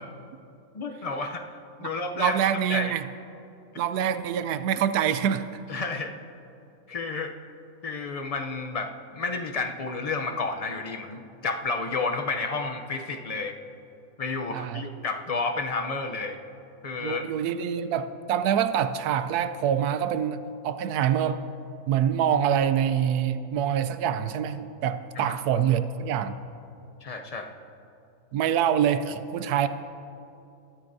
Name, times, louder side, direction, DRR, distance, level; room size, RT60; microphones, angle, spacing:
voice 1, 0.7-2.4 2.7-2.9 5.7-6.1 6.9-7.3 7.8-13.6 14.2-16.4 16.8-17.2 25.2-25.4 27.0-27.5, left 3 dB, 70° left, 4 dB, 0.3 m, -31 dB
voice 2, 2.2-3.0 3.8-5.5 14.5-14.8 17.0-21.4 21.9-26.4 28.3-29.7, right 9 dB, 85° right, 12 dB, 1.1 m, -25 dB
23.0 x 13.0 x 2.7 m, 2.8 s
omnidirectional pair, 1.6 m